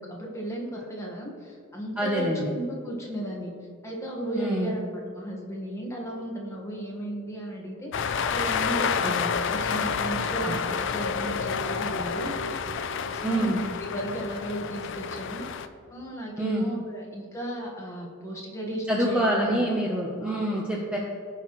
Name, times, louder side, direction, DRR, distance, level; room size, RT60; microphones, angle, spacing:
voice 1, 0.0-3.5 3.8-7.9 8.3-9.2 9.5-12.4 13.1-15.5 15.9-19.7 20.2-20.7, right 1 dB, 15° left, -2 dB, 1.4 m, -35 dB
voice 2, 2.0-2.5 4.3-4.7 9.0-9.3 10.4-10.6 13.2-13.6 16.4-16.7 18.9-21.0, right 1 dB, 5° right, -3 dB, 0.7 m, -26 dB
sound 1, 7.9-15.7, left 6 dB, 60° left, 0.4 m, -29 dB
16.0 x 5.8 x 3.1 m, 2.2 s
head